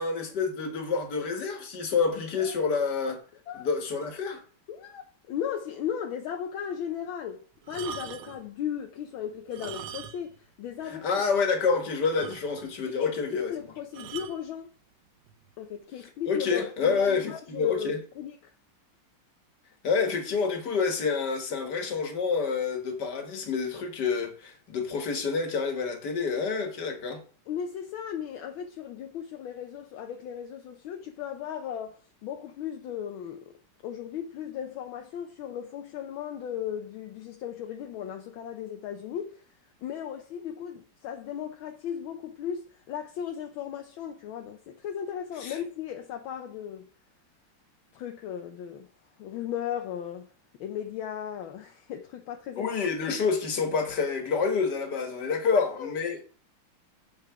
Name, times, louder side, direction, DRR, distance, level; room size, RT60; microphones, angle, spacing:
voice 1, 0.0-3.2 3.5-4.4 10.9-13.5 16.3-18.0 19.8-27.2 45.4-45.6 52.6-56.2, left 5 dB, 55° left, 2.1 m, -28 dB
voice 2, 4.7-11.2 11.7-11.8 12.9-14.7 15.6-18.5 27.5-33.6 33.8-39.4 39.8-46.9 47.9-48.9 49.2-50.3 50.6-52.8 55.4-55.9, left 9 dB, 75° left, 1.5 m, -36 dB
sound 1, 7.6-8.5 9.4-10.4 10.7-10.8 11.3-11.4 11.7-11.8 12.2-12.8 13.9-14.4 15.3-15.5, right 8 dB, 90° right, 1.6 m, -41 dB
7.1 x 6.8 x 4.7 m
omnidirectional pair, 2.3 m